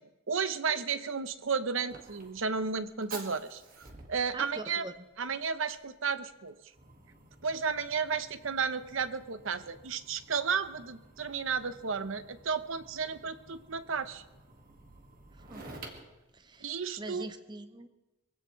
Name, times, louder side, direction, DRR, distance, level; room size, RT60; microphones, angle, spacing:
voice 1, 0.3-4.8 5.2-6.6 7.4-14.2 16.6-17.3, right 5 dB, 65° right, 12 dB, 0.8 m, -33 dB
Fire, 1.0-17.2, right 2 dB, 40° right, 1.8 m, -52 dB
voice 2, 4.3-5.1 15.3-15.8 16.3-17.9, right 2 dB, 20° right, 10 dB, 0.6 m, -44 dB
23.0 x 16.0 x 3.2 m, 1.0 s
head